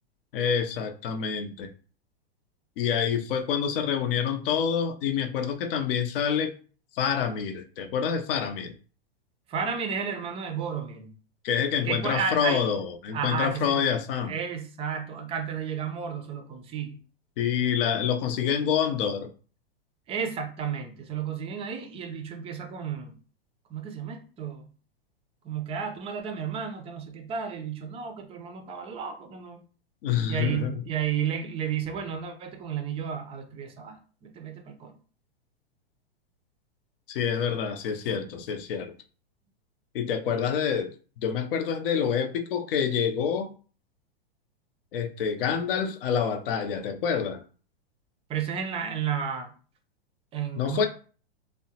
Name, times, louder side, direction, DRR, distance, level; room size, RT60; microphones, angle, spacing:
voice 1, 0.3-1.7 2.8-6.5 6.9-8.7 11.4-14.3 17.4-19.3 30.0-30.8 37.1-38.9 39.9-40.9 41.2-43.5 44.9-47.4 50.6-50.9, left 7 dB, 60° left, 0.6 m, -27 dB
voice 2, 9.5-11.1 11.8-12.7 13.1-13.9 14.3-17.0 20.1-23.2 23.7-24.7 25.4-29.6 30.3-35.0 48.3-49.5 50.3-50.9, right 7 dB, 20° right, 0.4 m, -32 dB
3.4 x 2.1 x 2.7 m
hypercardioid pair, 115°, 32 cm